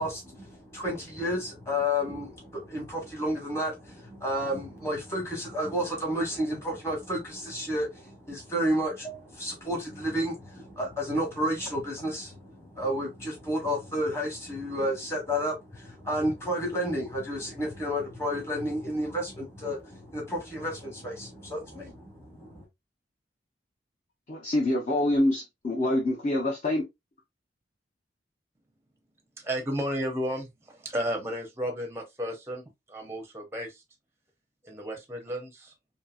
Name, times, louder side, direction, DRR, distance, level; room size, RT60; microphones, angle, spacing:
voice 1, 0.0-22.6, equal, 15° left, 1.0 m, -31 dB
voice 2, 24.3-26.9, left 1 dB, 40° left, 0.6 m, -26 dB
voice 3, 29.4-32.6 32.9-33.8 34.6-35.7, equal, 15° right, 0.5 m, -33 dB
2.7 x 2.7 x 2.3 m
head